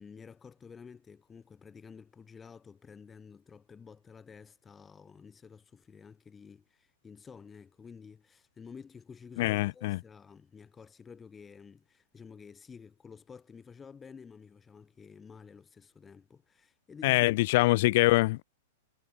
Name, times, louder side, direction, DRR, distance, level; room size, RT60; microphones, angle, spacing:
voice 1, 0.0-17.3, left 6 dB, 20° left, 2.2 m, -51 dB
voice 2, 9.4-10.0 17.0-18.4, left 20 dB, 55° left, 0.3 m, -24 dB
hypercardioid pair, 110°, 0 cm